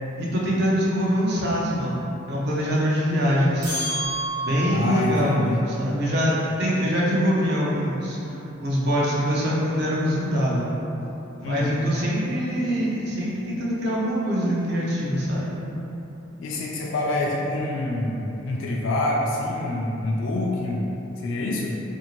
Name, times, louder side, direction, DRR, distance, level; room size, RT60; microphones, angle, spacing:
voice 1, 0.2-3.7 4.4-10.7 11.4-15.5, equal, 50° right, -6 dB, 0.6 m, -24 dB
sound 1, 3.6-5.0, right 1 dB, 85° right, 1.0 m, -29 dB
voice 2, 4.7-5.6 11.4-11.8 16.4-20.9 21.2-21.8, left 1 dB, 70° left, -3 dB, 0.3 m, -26 dB
2.6 x 2.4 x 2.9 m, 3.0 s
head